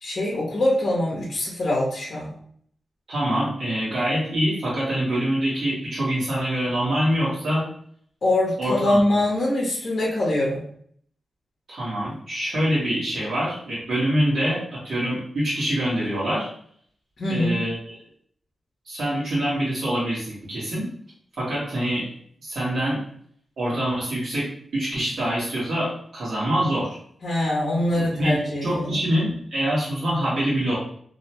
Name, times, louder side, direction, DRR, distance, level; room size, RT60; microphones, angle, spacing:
voice 1, 0.0-2.3 8.2-10.6 17.2-17.6 27.2-29.0, left 1 dB, 50° left, -4 dB, 0.7 m, -23 dB
voice 2, 3.1-7.6 8.6-9.0 11.7-16.5 17.3-18.0 18.8-20.9 21.4-22.0 22.4-23.0 23.6-24.5 24.7-27.0 28.0-30.8, equal, 70° right, -9 dB, 1.2 m, -25 dB
2.7 x 2.1 x 2.8 m, 0.62 s
wide cardioid pair, 160°, 0 cm